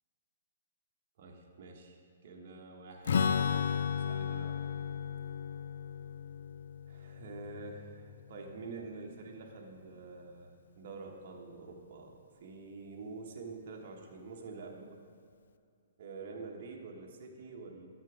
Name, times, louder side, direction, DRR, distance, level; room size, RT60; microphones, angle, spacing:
voice 1, 1.2-3.6 4.0-4.6 6.9-12.2 12.4-15.0 16.0-17.9, right 3 dB, 50° right, 1 dB, 1.2 m, -47 dB
Strum, 3.0-8.7, left 7 dB, 65° left, 0.3 m, -34 dB
12.0 x 4.5 x 4.9 m, 2.4 s
hypercardioid pair, 125°, 0 cm